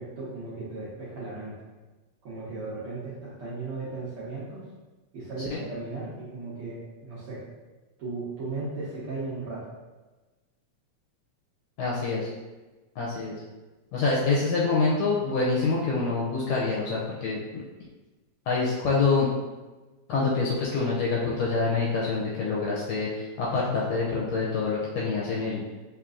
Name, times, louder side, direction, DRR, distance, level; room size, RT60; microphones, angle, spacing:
voice 1, 0.0-1.5 2.2-4.6 5.1-7.4 8.0-9.6, right 3 dB, 65° right, -10 dB, 1.5 m, -36 dB
voice 2, 11.8-12.3 13.0-13.4 13.9-17.6 18.5-19.3 20.1-25.6, left 4 dB, 80° left, -5 dB, 1.6 m, -26 dB
4.9 x 2.9 x 2.4 m, 1.2 s
omnidirectional pair, 3.5 m